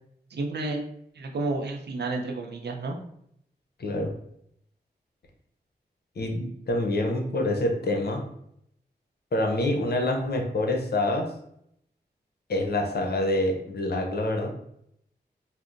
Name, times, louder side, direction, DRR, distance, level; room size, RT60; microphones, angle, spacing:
voice 1, 0.3-0.8 1.1-3.0, right 2 dB, 75° right, 2 dB, 0.6 m, -31 dB
voice 2, 3.8-4.1 6.2-8.2 9.3-11.3 12.5-14.5, left 1 dB, 65° left, 2 dB, 0.6 m, -26 dB
4.2 x 2.0 x 2.5 m, 0.72 s
cardioid pair, 50°, 17 cm